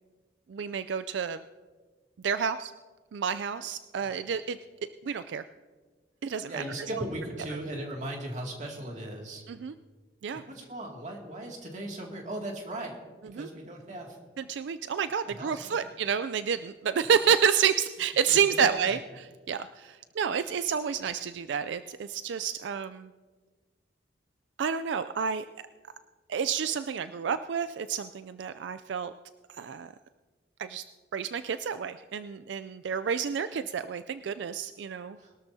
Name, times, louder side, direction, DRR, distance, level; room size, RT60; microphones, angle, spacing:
voice 1, 0.5-1.4 2.2-2.7 3.1-4.6 5.0-5.4 6.2-6.6 9.5-9.7 10.2-10.4 13.3-13.5 14.4-23.1 24.6-25.4 26.3-29.1 29.5-29.9 30.6-30.8 31.1-35.2, right 7 dB, 80° right, 12 dB, 0.4 m, -29 dB
voice 2, 6.5-9.4 10.5-14.2 15.2-15.7 18.3-19.0 35.2-35.3, right 1 dB, 40° right, 0 dB, 2.3 m, -38 dB
21.5 x 13.0 x 2.8 m, 1.4 s
head